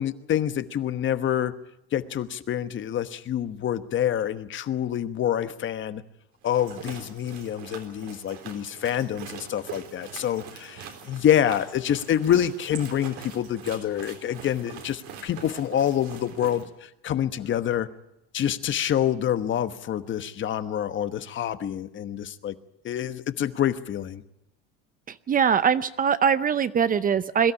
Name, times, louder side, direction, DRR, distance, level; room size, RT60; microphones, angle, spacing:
voice 1, 0.0-1.5 1.9-6.0 6.4-17.9 18.3-22.5 22.8-24.2, left 10 dB, 40° left, 11 dB, 1.2 m, -27 dB
sound 1, 6.4-16.6, right 8 dB, 75° right, 3.7 m, -43 dB
voice 2, 25.1-27.5, right 7 dB, 30° right, 15 dB, 0.6 m, -22 dB
22.5 x 13.0 x 9.9 m, 0.87 s
cardioid pair, 115°, 29 cm